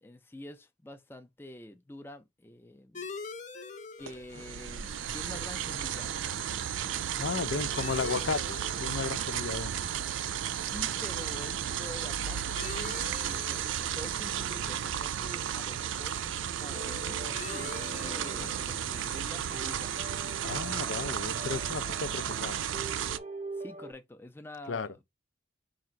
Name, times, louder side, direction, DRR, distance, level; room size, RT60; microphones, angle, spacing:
voice 1, 0.0-3.1 4.0-6.2 10.2-19.9 23.5-25.0, left 1 dB, 10° left, 0.4 m, -47 dB
sound 1, 2.9-22.1, left 4 dB, 40° left, 0.8 m, -48 dB
sound 2, 4.0-23.2, right 9 dB, 85° right, 0.4 m, -34 dB
voice 2, 7.2-9.7 18.4-18.5 20.4-22.8 24.7-24.9, left 5 dB, 80° left, 0.5 m, -34 dB
sound 3, 16.7-23.9, right 2 dB, 35° right, 0.6 m, -44 dB
4.9 x 2.5 x 4.3 m
head